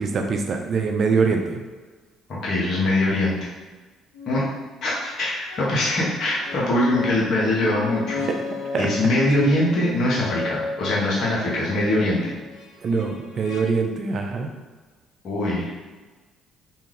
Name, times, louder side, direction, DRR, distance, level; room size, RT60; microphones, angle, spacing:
voice 1, 0.0-1.6 8.3-8.4 8.7-8.9 12.8-14.5, right 4 dB, 50° right, 3 dB, 0.5 m, -23 dB
voice 2, 2.4-3.5 4.3-4.4 4.8-8.2 8.8-12.3 15.2-15.7, left 1 dB, 55° left, -7 dB, 0.9 m, -22 dB
sound 1, 4.1-4.3 5.4-13.6, left 4 dB, 85° left, 0.5 m, -35 dB
2.6 x 2.3 x 3.3 m, 1.3 s
hypercardioid pair, 55°, 0 cm